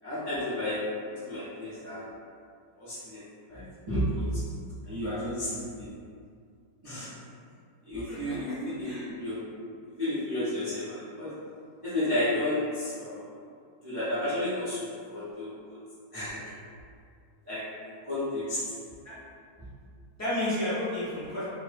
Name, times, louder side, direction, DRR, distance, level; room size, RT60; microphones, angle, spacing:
voice 1, 0.0-0.9 1.2-2.1 2.8-3.2 3.5-4.4 4.8-5.9 6.8-7.1 7.9-9.4 10.0-11.4 11.8-13.3 13.8-15.8 16.1-16.5 17.4-17.8 18.0-18.7, left 1 dB, 20° right, -14 dB, 0.6 m, -32 dB
voice 2, 8.1-8.5 8.8-9.1 19.0-19.2 20.2-21.5, left 1 dB, 30° left, -13 dB, 0.3 m, -32 dB
3.0 x 2.1 x 2.5 m, 2.2 s
omnidirectional pair, 1.7 m